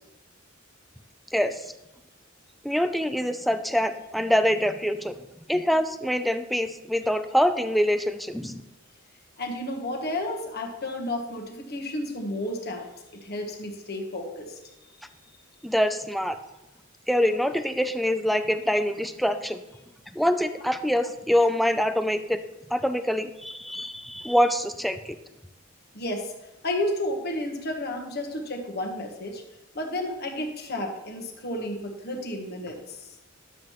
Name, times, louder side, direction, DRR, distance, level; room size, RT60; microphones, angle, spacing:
voice 1, 2.6-5.2 5.5-8.6 15.6-16.4 17.1-19.6 20.1-22.4 22.7-25.2, equal, ahead, 9 dB, 0.3 m, -25 dB
voice 2, 9.4-12.9 13.1-14.6 25.9-26.3 26.6-29.4 29.7-33.0, left 1 dB, 50° left, 2 dB, 1.2 m, -32 dB
10.5 x 7.3 x 3.1 m, 0.95 s
head